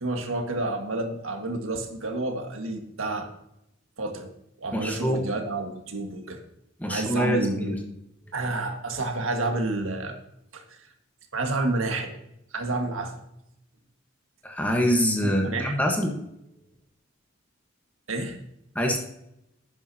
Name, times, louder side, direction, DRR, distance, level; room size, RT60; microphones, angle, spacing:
voice 1, 0.0-3.3 4.0-4.3 4.6-6.4 6.9-7.7 8.3-10.2 10.5-10.9 11.3-12.2 12.5-13.2 15.2-15.9 18.1-18.4, right 2 dB, 90° right, 4 dB, 1.7 m, -30 dB
voice 2, 4.7-5.2 6.8-7.8 14.4-16.2 18.7-19.0, equal, 10° left, 2 dB, 1.3 m, -25 dB
11.5 x 9.4 x 2.8 m, 0.83 s
head